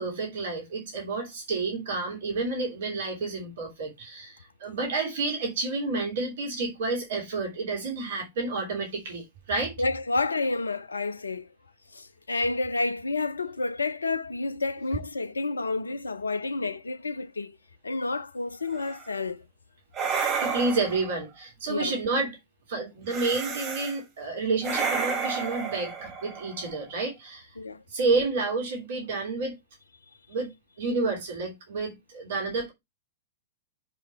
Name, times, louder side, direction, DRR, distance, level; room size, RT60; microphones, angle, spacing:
voice 1, 0.0-9.7 20.4-22.4 22.7-27.5 27.9-29.6 30.3-32.7, right 3 dB, 55° right, 3.0 m, -30 dB
voice 2, 9.8-11.5 11.9-17.5 17.8-19.4 21.7-22.0 27.6-27.8, left 3 dB, 80° left, 0.7 m, -30 dB
sound 1, 18.7-19.1 19.9-21.2 23.1-24.0 24.6-26.9, right 5 dB, 25° right, 2.1 m, -31 dB
7.1 x 5.0 x 4.3 m
figure-of-eight pair, 105°, 0 cm